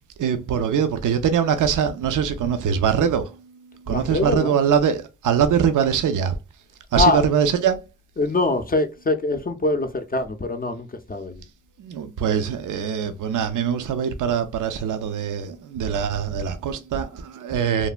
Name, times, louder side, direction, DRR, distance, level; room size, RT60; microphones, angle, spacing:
voice 1, 0.2-3.4 3.7-6.4 6.9-7.8 11.8-17.9, right 7 dB, 75° right, 0.5 m, -22 dB
voice 2, 3.9-4.6 6.9-7.3 8.2-11.4, left 2 dB, 30° left, 0.4 m, -23 dB
3.2 x 2.1 x 2.3 m
cardioid pair, 60°, 31 cm